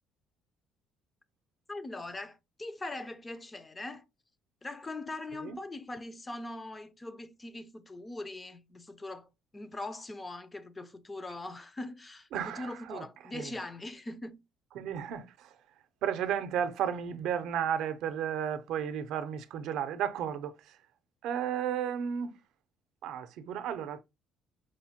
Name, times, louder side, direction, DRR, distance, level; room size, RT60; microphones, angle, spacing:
voice 1, 1.7-4.1 4.6-14.4, left 2 dB, 15° left, 0.3 m, -41 dB
voice 2, 12.3-13.1 13.3-13.5 14.8-15.5 16.0-20.8 21.2-22.4 23.0-24.0, right 9 dB, 70° right, 0.5 m, -33 dB
4.9 x 2.1 x 2.8 m
cardioid pair, 140°, 0 cm